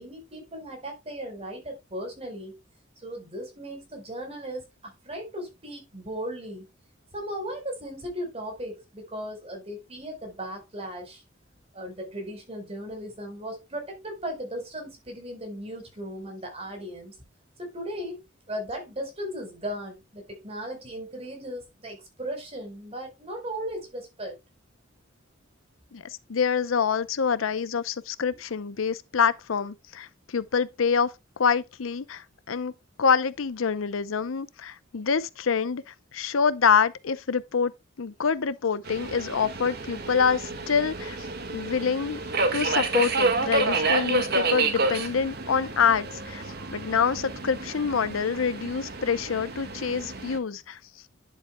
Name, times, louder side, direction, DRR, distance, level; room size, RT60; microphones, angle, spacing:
voice 1, 0.0-2.5 3.0-6.7 7.1-11.2 11.7-17.2 17.6-18.2 18.5-24.4, equal, 30° right, 4.1 m, -37 dB
voice 2, 26.3-31.1 31.4-32.7 33.0-37.7 38.0-41.2 41.5-42.2 42.5-46.4 46.7-50.8, left 6 dB, 85° left, 0.6 m, -26 dB
Subway metro underground, 38.9-50.4, right 3 dB, 55° right, 1.7 m, -29 dB
10.5 x 7.4 x 2.2 m
head